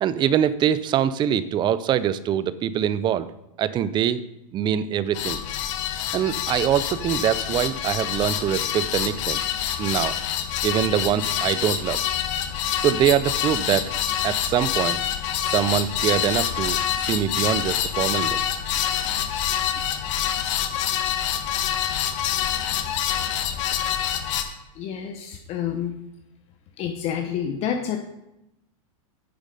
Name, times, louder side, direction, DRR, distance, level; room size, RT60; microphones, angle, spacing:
voice 1, 0.0-3.3 3.6-4.2 4.5-5.4 6.1-9.5 9.8-10.2 10.6-12.0 12.8-13.9 14.2-15.0 15.5-18.4, right 10 dB, 25° right, 15 dB, 0.5 m, -23 dB
sound 1, 5.1-24.4, left 10 dB, 60° left, 1.4 m, -26 dB
voice 2, 24.7-25.9 26.8-28.0, left 8 dB, 35° left, 4 dB, 1.0 m, -28 dB
9.6 x 7.1 x 5.4 m, 0.89 s
supercardioid pair, 135°, 18 cm